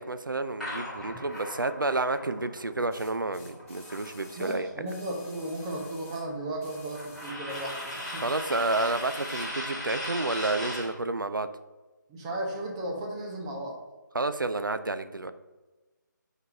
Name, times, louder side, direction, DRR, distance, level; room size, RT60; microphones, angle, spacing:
voice 1, 0.0-4.7 8.2-11.5 14.1-15.3, right 2 dB, 85° right, 11 dB, 0.5 m, -30 dB
sound 1, 0.6-4.7 5.0-10.9, equal, ahead, 1.7 m, -39 dB
sound 2, 1.3-1.5 2.9-6.3 6.6-9.6 10.5-10.6, left 3 dB, 40° left, 1.3 m, -52 dB
voice 2, 4.4-8.3 12.1-13.8, right 1 dB, 15° right, -1 dB, 0.8 m, -35 dB
5.4 x 4.1 x 4.2 m, 1.2 s
figure-of-eight pair, 150°, 11 cm